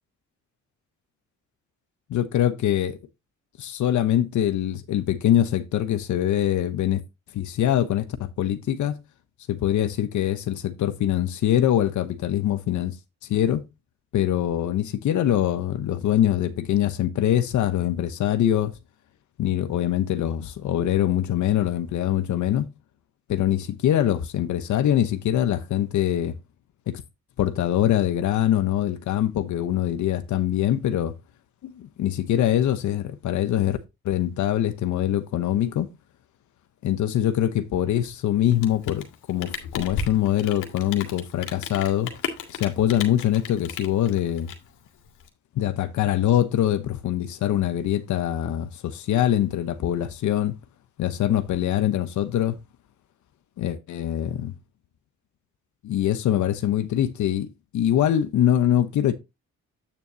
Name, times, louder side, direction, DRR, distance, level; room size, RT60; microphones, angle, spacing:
voice 1, 2.1-3.0 3.6-7.0 7.3-8.9 9.5-13.0 13.3-13.6 14.1-18.7 19.4-22.7 23.3-26.3 26.9-27.0 27.4-31.1 31.6-33.8 34.0-35.9 36.8-42.1 42.5-44.5 45.5-50.6 51.0-52.6 53.6-54.5 55.8-59.1, left 11 dB, 70° left, 1.0 m, -23 dB
Rain, 38.5-45.3, left 7 dB, 90° left, 2.0 m, -35 dB
8.8 x 6.9 x 2.8 m
cardioid pair, 90°, 30 cm